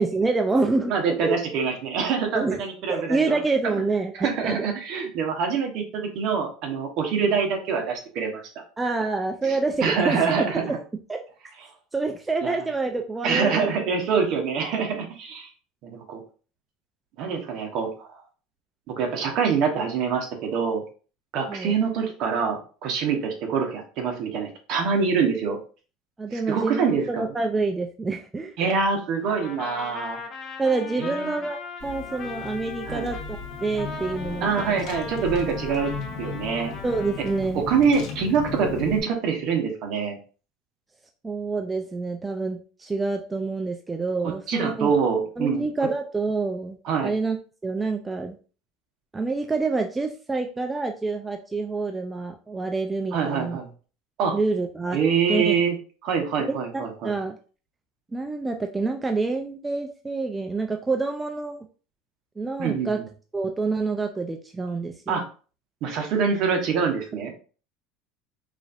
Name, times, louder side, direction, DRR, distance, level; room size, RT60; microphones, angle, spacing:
voice 1, 0.0-0.9 1.2-1.4 2.3-2.6 2.9-4.7 8.8-10.7 11.1-11.2 11.9-13.7 21.5-21.8 26.2-28.6 30.6-34.8 36.8-37.6 41.2-44.9 45.4-46.8 47.0-47.4 47.6-48.4 49.1-53.6 54.3-55.0 55.3-55.6 56.5-56.6 57.0-57.4 58.1-61.6 62.4-63.0 63.3-65.2, right 3 dB, 15° right, 3 dB, 0.4 m, -27 dB
voice 2, 0.9-3.8 4.1-8.4 9.4-10.8 12.4-12.5 13.2-15.5 15.8-16.2 17.2-18.2 18.9-20.8 21.3-25.6 26.3-27.3 28.6-30.2 31.0-31.4 32.9-33.1 34.4-35.9 36.2-36.7 37.5-40.2 44.2-45.7 46.8-47.1 53.1-53.7 54.2-54.3 54.9-55.7 56.0-57.1 62.6-63.1 65.1-65.2 65.8-67.4, right 6 dB, 55° right, 3 dB, 1.1 m, -25 dB
Trumpet, 29.2-37.4, left 4 dB, 35° left, 0.7 m, -38 dB
Car / Engine, 31.8-39.0, left 5 dB, 60° left, 1.0 m, -36 dB
4.8 x 2.6 x 2.5 m, 0.38 s
supercardioid pair, 120°, 0 cm